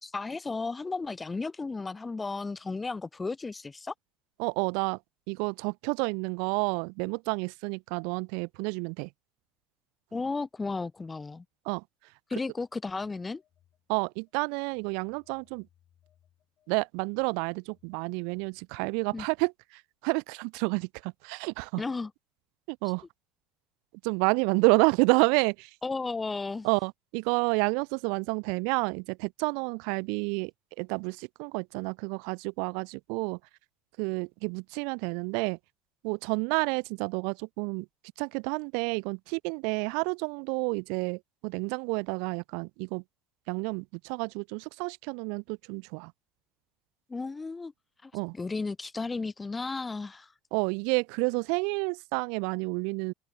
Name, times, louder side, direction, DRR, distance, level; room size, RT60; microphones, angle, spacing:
voice 1, 0.0-3.9 10.1-11.4 12.3-13.4 19.1-19.3 21.8-22.1 25.8-26.7 47.1-47.7 48.0-50.3, left 3 dB, 20° left, 0.6 m, -34 dB
voice 2, 4.4-5.0 5.3-9.1 11.7-11.8 13.9-15.7 16.7-21.8 22.7-23.0 24.0-25.7 26.6-30.5 30.8-33.4 34.0-35.6 36.0-37.9 38.2-43.0 43.5-46.1 48.1-48.3 50.5-53.1, right 38 dB, 70° right, 0.4 m, -29 dB
Telephone, 12.5-14.3 14.7-18.8, left 11 dB, 50° left, 5.0 m, -69 dB
open air
hypercardioid pair, 80°, 0 cm